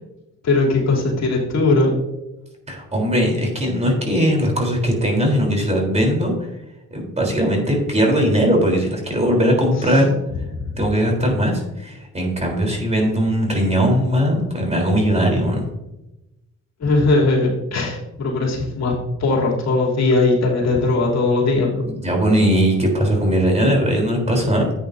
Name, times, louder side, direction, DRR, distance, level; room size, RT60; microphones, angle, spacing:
voice 1, 0.4-1.9 10.5-10.6 16.8-18.9 19.2-21.8, left 3 dB, 60° left, -2 dB, 3.1 m, -19 dB
voice 2, 2.7-6.5 6.9-10.1 10.8-15.7 21.9-24.7, equal, 20° right, 1 dB, 3.5 m, -19 dB
11.5 x 8.5 x 2.6 m, 0.93 s
cardioid pair, 90°, 30 cm